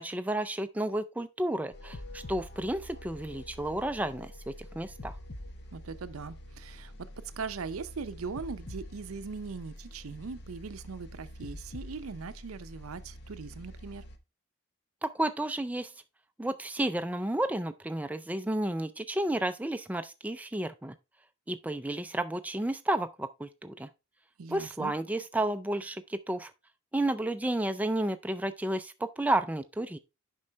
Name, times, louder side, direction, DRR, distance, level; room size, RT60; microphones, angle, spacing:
voice 1, 0.0-5.1 15.0-15.9 16.4-20.9 21.5-23.9 24.5-26.5 26.9-30.0, right 1 dB, 5° right, 0.3 m, -32 dB
sound 1, 1.7-14.2, left 1 dB, 50° left, 0.8 m, -46 dB
voice 2, 5.7-14.0 24.4-24.9, right 4 dB, 90° right, 0.6 m, -40 dB
7.6 x 5.4 x 3.4 m
head